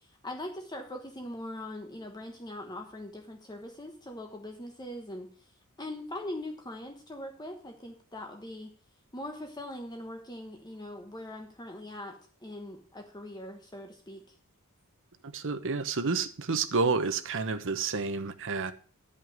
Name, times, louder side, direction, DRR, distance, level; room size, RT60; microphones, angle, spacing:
voice 1, 0.2-5.3 5.8-8.7 9.1-12.2 12.4-14.2, left 1 dB, 20° left, 3 dB, 1.1 m, -41 dB
voice 2, 15.2-18.7, right 4 dB, 60° right, 10 dB, 1.0 m, -30 dB
11.0 x 5.5 x 6.5 m, 0.42 s
head